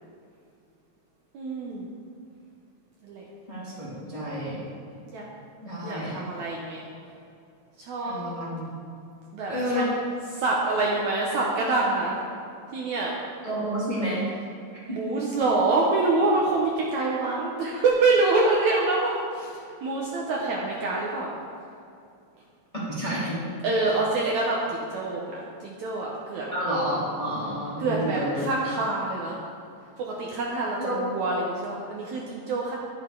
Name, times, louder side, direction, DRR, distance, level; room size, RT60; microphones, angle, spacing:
voice 1, 1.3-1.9 3.0-3.2 5.1-5.3 5.8-6.8 7.8-8.2 9.3-9.9 10.3-12.2 12.7-13.1 14.9-21.4 23.6-26.6 27.8-29.4 30.0-32.8, right 3 dB, 70° right, -3 dB, 2.0 m, -26 dB
voice 2, 3.5-4.6 5.6-6.2 8.0-8.7 9.5-9.9 13.4-14.3 14.7-15.0 22.9-23.4 26.5-28.4 30.8-31.0, equal, 10° left, -9 dB, 2.0 m, -30 dB
10.5 x 8.7 x 3.8 m, 2.5 s
omnidirectional pair, 3.9 m